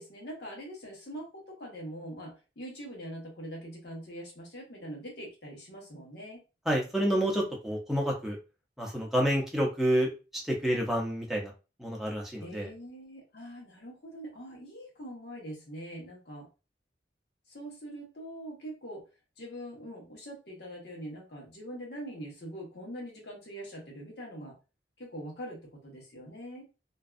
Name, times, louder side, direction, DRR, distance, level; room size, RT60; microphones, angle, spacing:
voice 1, 0.0-6.4 12.4-16.5 17.5-19.0 19.4-24.5 25.0-26.7, equal, 70° left, -1 dB, 1.0 m, -43 dB
voice 2, 6.7-8.4 8.8-11.5 11.8-12.7, equal, ahead, -1 dB, 0.5 m, -29 dB
2.5 x 2.2 x 2.3 m, 0.31 s
head